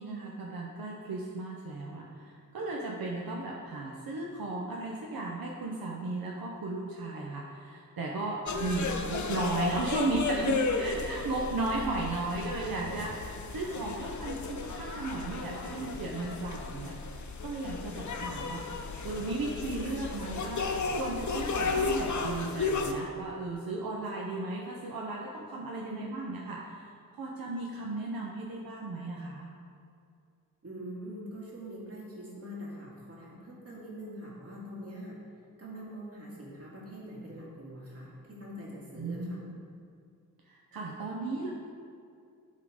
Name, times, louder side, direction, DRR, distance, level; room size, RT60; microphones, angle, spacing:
voice 1, 0.0-16.9 17.4-18.6 19.0-20.6 21.0-26.9 27.1-29.5 38.9-39.6 40.5-41.5, right 2 dB, 75° right, -2 dB, 0.9 m, -35 dB
sound 1, 8.5-22.9, left 4 dB, 55° left, 0.7 m, -34 dB
voice 2, 8.5-9.2 25.8-26.0 30.6-35.2 35.6-39.4, equal, 40° right, -5 dB, 2.0 m, -43 dB
11.5 x 3.8 x 5.0 m, 2.4 s
wide cardioid pair, 120°, 36 cm